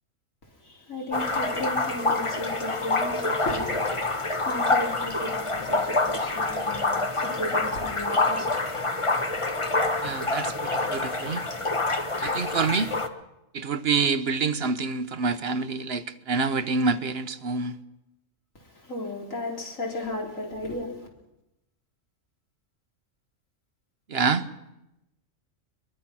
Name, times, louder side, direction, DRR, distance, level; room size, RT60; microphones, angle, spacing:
voice 1, 0.4-8.7 18.5-21.1, left 1 dB, 75° left, 4.3 m, -35 dB
sound 1, 1.1-13.1, left 2 dB, 25° left, 1.2 m, -27 dB
voice 2, 10.0-11.4 12.2-12.9 13.5-17.8 24.1-24.5, right 4 dB, 50° right, 1.1 m, -27 dB
22.5 x 22.5 x 6.1 m
omnidirectional pair, 1.4 m